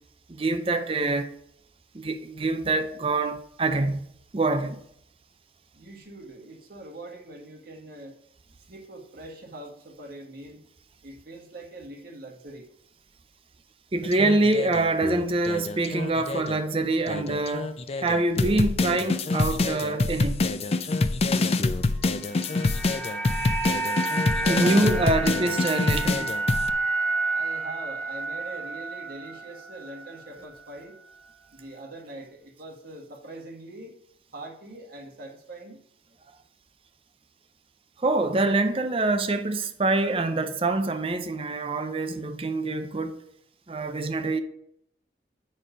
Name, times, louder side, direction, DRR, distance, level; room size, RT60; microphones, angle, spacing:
voice 1, 0.3-1.3 1.9-4.8 13.9-20.5 24.5-26.3 38.0-43.2 43.7-44.4, right 2 dB, 30° right, 0.6 m, -25 dB
voice 2, 5.7-8.2 8.7-10.6 11.0-12.7 24.4-25.1 27.3-31.0 31.5-33.9 34.3-35.8, right 2 dB, 50° right, 1.7 m, -42 dB
sound 1, 14.0-16.6 17.1-26.7, left 3 dB, 35° left, 0.4 m, -26 dB
sound 2, 22.0-30.3 30.5-30.7, right 3 dB, 5° left, 1.0 m, -30 dB
9.1 x 4.2 x 5.1 m
head